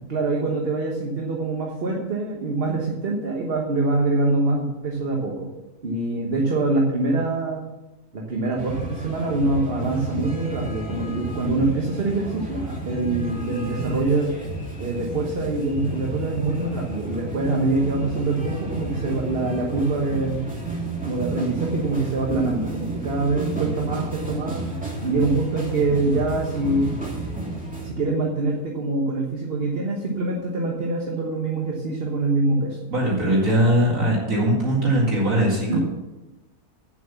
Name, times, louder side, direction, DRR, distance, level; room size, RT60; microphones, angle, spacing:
voice 1, 0.1-5.5 5.8-7.6 8.1-14.3 14.8-20.4 21.0-24.6 25.0-26.9 27.8-32.8 35.7-35.8, right 2 dB, 40° right, -1 dB, 1.4 m, -24 dB
sound 1, 8.6-27.9, right 2 dB, 5° right, 2.3 m, -32 dB
voice 2, 32.9-35.8, right 1 dB, 55° right, -4 dB, 2.6 m, -20 dB
8.9 x 7.7 x 7.0 m, 1.0 s
omnidirectional pair, 1.7 m